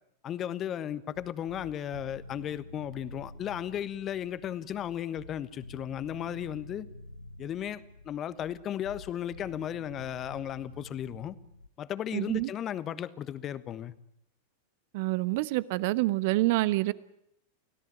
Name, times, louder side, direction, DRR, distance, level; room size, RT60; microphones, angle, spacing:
voice 1, 0.2-6.9 7.4-11.3 11.8-13.9, left 10 dB, 30° left, 15 dB, 1.3 m, -35 dB
sound 1, 1.1-11.7, left 2 dB, 80° left, 1.0 m, -48 dB
voice 2, 12.1-12.5 14.9-16.9, right 19 dB, 50° right, 18 dB, 1.1 m, -27 dB
29.5 x 17.0 x 9.1 m, 0.77 s
figure-of-eight pair, 90°, 0 cm